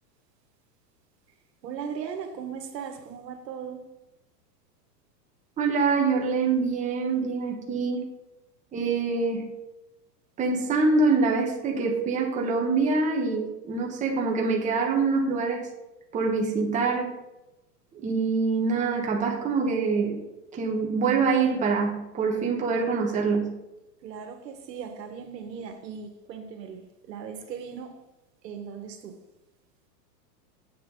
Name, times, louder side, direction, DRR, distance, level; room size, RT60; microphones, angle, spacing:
voice 1, 1.6-3.8 24.0-28.0 28.4-29.2, right 7 dB, 80° right, 1.7 m, -38 dB
voice 2, 5.6-8.0 8.7-9.5 10.4-15.6 16.1-17.1 18.0-20.2 20.5-23.6, right 4 dB, 15° right, 1.3 m, -25 dB
8.1 x 7.8 x 4.0 m
supercardioid pair, 150°, 49 cm